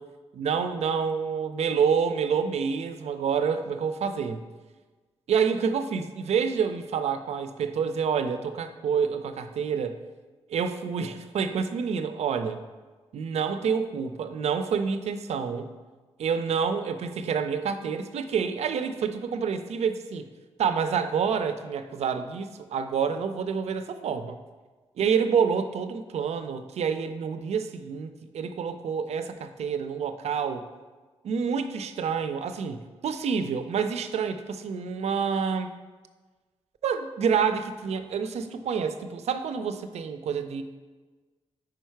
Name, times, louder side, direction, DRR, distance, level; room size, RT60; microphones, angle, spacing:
voice 1, 0.3-4.4 5.3-10.0 10.5-12.6 13.1-15.7 16.2-20.3 20.6-24.4 25.0-30.7 31.2-35.7 36.8-40.6, right 6 dB, 85° right, 9 dB, 0.4 m, -28 dB
4.9 x 4.6 x 4.5 m, 1.3 s
wide cardioid pair, 110°, 11 cm